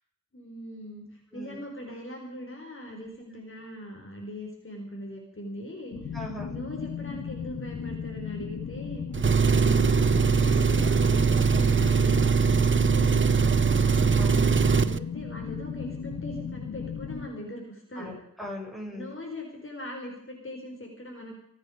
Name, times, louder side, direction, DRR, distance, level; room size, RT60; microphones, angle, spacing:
voice 1, 0.3-6.1 6.5-9.1 9.6-12.5 12.8-18.1 18.9-21.3, equal, 40° left, 0 dB, 4.8 m, -40 dB
sound 1, 5.9-17.3, left 6 dB, 90° left, 2.3 m, -36 dB
voice 2, 6.1-6.5 9.5-9.9 14.2-14.5 18.0-19.1, left 1 dB, ahead, -2 dB, 7.6 m, -40 dB
Engine, 9.1-15.0, right 5 dB, 40° right, 0.7 m, -22 dB
24.5 x 9.7 x 5.2 m, 0.75 s
cardioid pair, 50°, 32 cm